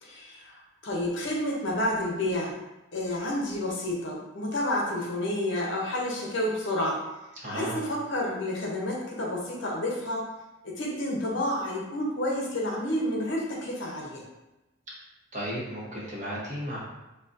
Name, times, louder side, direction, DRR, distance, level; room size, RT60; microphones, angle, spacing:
voice 1, 0.0-2.6 2.9-7.0 7.5-10.2 10.6-14.2, left 1 dB, 60° left, -2 dB, 0.6 m, -30 dB
voice 2, 7.4-7.8 15.3-16.8, equal, 35° right, -6 dB, 0.8 m, -34 dB
3.7 x 2.2 x 2.5 m, 1.0 s
head